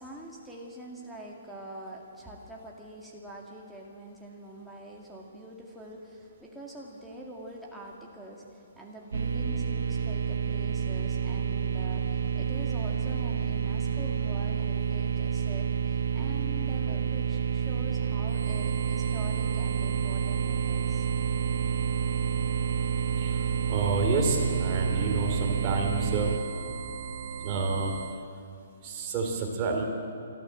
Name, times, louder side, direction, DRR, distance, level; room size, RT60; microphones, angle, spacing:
voice 1, 0.0-21.1, right 1 dB, ahead, -4 dB, 2.0 m, -45 dB
sound 1, 9.1-26.4, right 7 dB, 75° right, 1.3 m, -29 dB
sound 2, 18.3-28.2, right 7 dB, 50° right, 0.7 m, -38 dB
voice 2, 23.7-26.3 27.4-27.9 28.8-29.8, right 3 dB, 20° right, 0 dB, 2.8 m, -29 dB
27.0 x 13.0 x 7.7 m, 2.6 s
hypercardioid pair, 175°, 0 cm